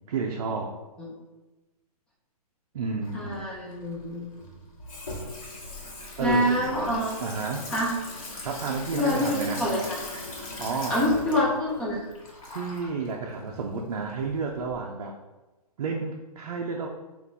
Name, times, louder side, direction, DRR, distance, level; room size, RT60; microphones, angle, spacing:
voice 1, 0.1-0.8 2.7-3.4 6.2-7.7 8.4-9.6 10.6-11.0 12.5-15.2 15.8-16.9, right 4 dB, 60° right, 0 dB, 0.5 m, -31 dB
Water tap faucet / Sink (filling or washing), 3.0-14.7, left 2 dB, 60° left, 1.1 m, -40 dB
voice 2, 3.1-4.2 6.2-7.2 7.7-8.0 9.0-9.8 10.9-12.1, left 1 dB, 5° left, -5 dB, 0.4 m, -26 dB
3.4 x 2.5 x 4.0 m, 1.1 s
hypercardioid pair, 155°, 20 cm